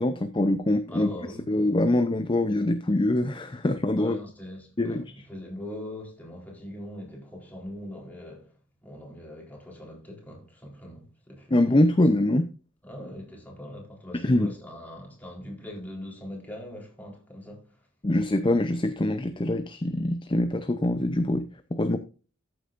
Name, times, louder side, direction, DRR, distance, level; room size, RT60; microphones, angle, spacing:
voice 1, 0.0-1.1 1.5-4.2 4.8-5.0 11.5-12.5 14.1-14.5 18.0-22.0, left 1 dB, 25° left, 0.6 m, -24 dB
voice 2, 0.9-1.8 4.0-8.6 8.8-11.6 12.8-17.9, left 1 dB, 10° left, 3.9 m, -41 dB
14.0 x 7.9 x 2.6 m
head